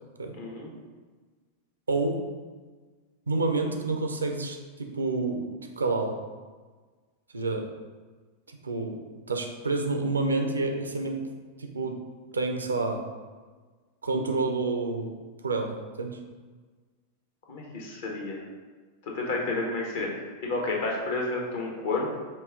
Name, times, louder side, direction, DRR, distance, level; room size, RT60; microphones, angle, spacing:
voice 1, 0.4-0.7 17.5-18.4 19.0-22.2, left 2 dB, 55° left, -1 dB, 1.0 m, -31 dB
voice 2, 1.9-2.2 3.3-5.5 5.8-6.2 7.3-7.7 8.5-9.0 9.3-11.2 11.6-12.0 12.3-13.0 14.0-15.1 15.4-16.2, right 3 dB, 75° right, 4 dB, 0.5 m, -28 dB
5.2 x 2.4 x 3.6 m, 1.4 s
figure-of-eight pair, 90°, 0 cm